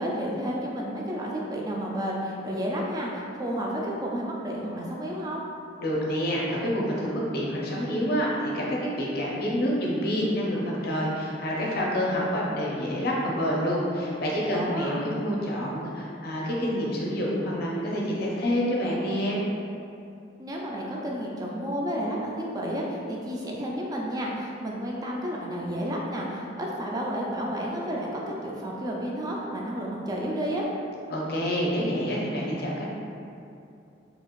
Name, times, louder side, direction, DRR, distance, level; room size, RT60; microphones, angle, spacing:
voice 1, 0.0-5.4 14.5-15.0 20.4-30.7, equal, 20° right, -2 dB, 0.3 m, -31 dB
voice 2, 5.8-19.4 31.1-32.8, equal, 55° left, -4 dB, 0.5 m, -27 dB
2.7 x 2.4 x 2.9 m, 2.6 s
head